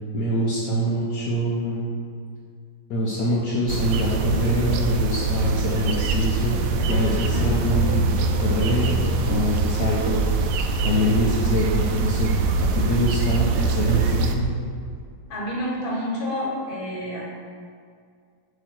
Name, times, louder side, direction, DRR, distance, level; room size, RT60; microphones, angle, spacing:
voice 1, 0.1-1.8 2.9-10.3 10.8-12.3 12.6-14.5, equal, 65° left, -5 dB, 1.3 m, -24 dB
sound 1, 3.7-14.4, right 3 dB, 85° right, 1.5 m, -23 dB
voice 2, 15.3-17.2, equal, 30° left, -4 dB, 1.4 m, -28 dB
7.9 x 3.1 x 6.0 m, 2.2 s
omnidirectional pair, 2.3 m